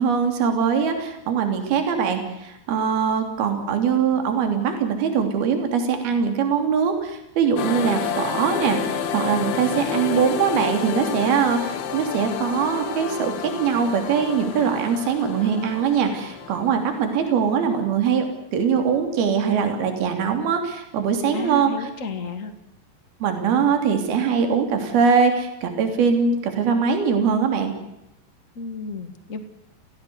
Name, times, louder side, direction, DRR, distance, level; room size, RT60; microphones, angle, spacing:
voice 1, 0.0-18.3 18.5-21.9 23.2-27.7, right 6 dB, 60° right, 6 dB, 4.9 m, -22 dB
voice 2, 3.4-3.7 21.3-22.5 28.5-29.4, left 3 dB, 40° left, 7 dB, 1.2 m, -33 dB
sound 1, 7.6-17.9, left 7 dB, 65° left, 3.2 m, -30 dB
29.0 x 17.0 x 7.9 m, 0.84 s
omnidirectional pair, 5.1 m